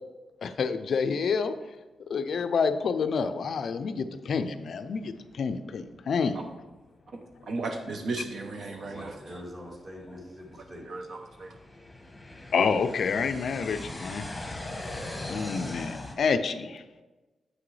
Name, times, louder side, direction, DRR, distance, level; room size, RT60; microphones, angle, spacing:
voice 1, 0.4-1.5 2.1-6.4 12.5-14.3 15.3-16.8, left 5 dB, 60° left, 10 dB, 0.4 m, -28 dB
voice 2, 7.1-9.4 10.9-11.6, right 3 dB, 55° right, 4 dB, 0.6 m, -36 dB
sound 1, 7.3-7.4 8.0-8.1 8.8-16.1, left 2 dB, 15° left, 1.0 m, -40 dB
voice 3, 8.8-10.8, equal, 30° right, -2 dB, 1.7 m, -43 dB
7.6 x 6.0 x 3.2 m, 1.2 s
wide cardioid pair, 155°, 0 cm